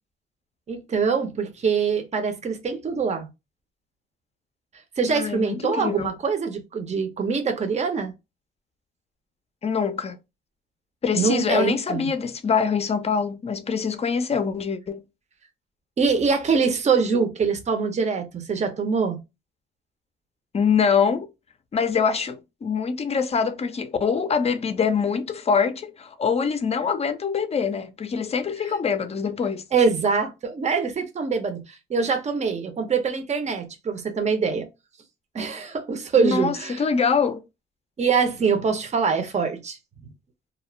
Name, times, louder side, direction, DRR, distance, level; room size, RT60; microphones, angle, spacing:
voice 1, 0.7-3.3 5.0-8.1 11.1-12.1 16.0-19.2 29.7-34.7 35.3-36.8 38.0-39.8, right 5 dB, 35° right, 0.7 m, -24 dB
voice 2, 5.1-6.2 9.6-10.2 11.0-15.0 20.5-21.3 21.7-29.6 36.2-37.4, left 6 dB, 30° left, 0.5 m, -24 dB
2.4 x 2.0 x 3.0 m
cardioid pair, 90°, 20 cm